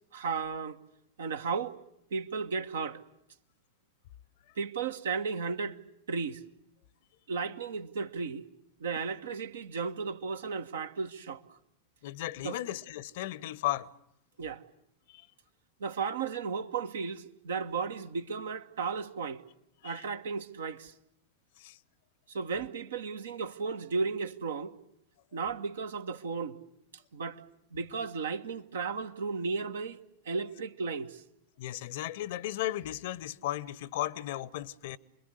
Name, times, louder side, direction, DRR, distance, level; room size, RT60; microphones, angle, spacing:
voice 1, 0.1-0.8 1.2-1.8 2.1-3.0 4.6-5.8 6.1-6.4 7.3-8.4 8.8-11.6 12.4-12.6 14.4-14.6 15.8-19.4 19.8-20.9 22.3-24.7 25.3-26.6 27.1-27.4 27.7-30.0 30.2-31.2, right 5 dB, 65° right, 1.4 m, -34 dB
voice 2, 12.0-13.9 15.1-15.3 19.8-20.0 21.6-21.8 31.6-35.0, left 14 dB, 55° left, 1.0 m, -35 dB
28.0 x 22.0 x 8.2 m
figure-of-eight pair, 90°, 0 cm